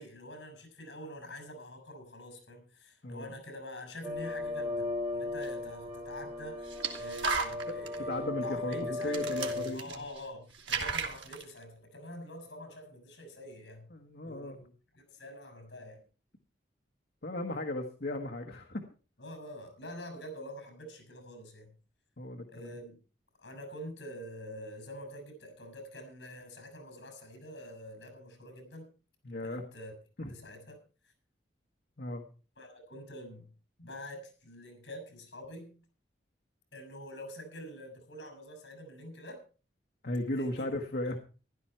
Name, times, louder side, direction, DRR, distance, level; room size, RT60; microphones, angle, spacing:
voice 1, 0.0-13.9 14.2-16.0 19.2-21.7 22.5-23.0 23.4-28.9 29.4-29.9 30.3-30.8 32.6-33.5 33.8-35.8 36.7-39.4 40.3-40.7 41.0-41.2, equal, 75° left, 6 dB, 6.3 m, -46 dB
voice 2, 3.0-3.3 7.7-8.7 9.0-9.9 13.9-14.6 17.2-18.8 22.2-22.7 29.2-29.7 30.2-30.3 32.0-32.2 40.0-41.2, left 1 dB, 60° left, 3 dB, 1.3 m, -36 dB
sound 1, 4.0-9.7, left 2 dB, 30° right, 5.6 m, -36 dB
sound 2, 5.4-5.5 6.7-8.0 8.7-8.8 9.0-10.3 10.5-11.4, right 4 dB, 85° right, 2.2 m, -35 dB
15.0 x 12.0 x 4.4 m, 0.36 s
head